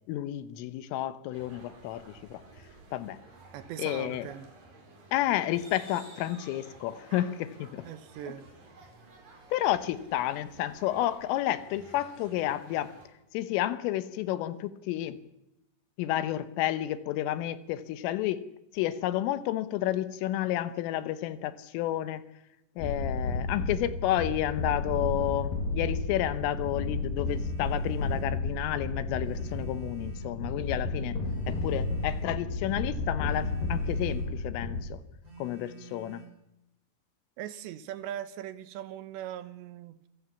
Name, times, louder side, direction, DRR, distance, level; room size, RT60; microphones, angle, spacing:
voice 1, 0.1-2.4 2.9-3.2 3.8-4.3 5.1-7.9 9.5-13.0 13.3-15.2 16.0-18.5 18.7-22.2 22.8-31.2 31.5-35.0 35.4-36.2, left 13 dB, 80° left, 3.5 m, -31 dB
sound 1, 1.3-13.1, right 3 dB, 45° right, 5.9 m, -53 dB
voice 2, 3.5-4.5 7.8-8.5 37.4-40.1, right 11 dB, 70° right, 3.1 m, -40 dB
sound 2, 22.8-34.8, left 2 dB, 50° left, 3.2 m, -32 dB
Telephone, 27.2-28.4 29.2-30.4 31.2-32.4 33.2-34.4 35.2-36.4, right 7 dB, 30° right, 7.8 m, -49 dB
27.0 x 16.0 x 7.0 m
omnidirectional pair, 5.8 m